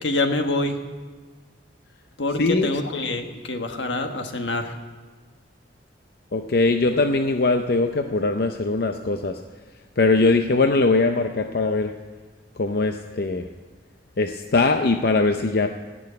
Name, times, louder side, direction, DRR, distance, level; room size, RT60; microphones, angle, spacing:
voice 1, 0.0-0.8 2.2-4.8, left 2 dB, 80° left, 6 dB, 1.3 m, -26 dB
voice 2, 6.3-9.4 10.0-11.9 12.6-13.4 14.2-15.7, left 3 dB, 55° left, 6 dB, 0.6 m, -21 dB
17.5 x 6.3 x 9.6 m, 1.4 s
head